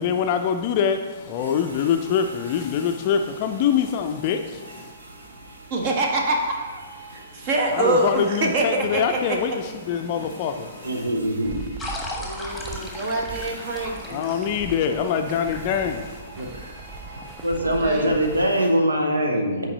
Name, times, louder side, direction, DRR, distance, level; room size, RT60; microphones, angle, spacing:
voice 1, 0.0-4.9 7.7-11.1 14.0-16.2, left 7 dB, 40° left, 6 dB, 0.4 m, -24 dB
sound 1, 0.8-18.7, right 2 dB, 65° right, 1.2 m, -44 dB
voice 2, 5.7-6.8 7.1-9.4 12.1-14.3 17.4-18.1, right 2 dB, 45° right, 1 dB, 1.3 m, -25 dB
voice 3, 10.8-11.6 16.4-16.8 17.4-19.7, equal, 80° right, 3 dB, 1.1 m, -23 dB
sound 2, 11.4-18.5, right 4 dB, 20° right, 0.5 m, -41 dB
sound 3, 11.8-17.2, left 2 dB, ahead, 1.4 m, -38 dB
8.5 x 4.6 x 4.0 m, 1.4 s
figure-of-eight pair, 115°, 0 cm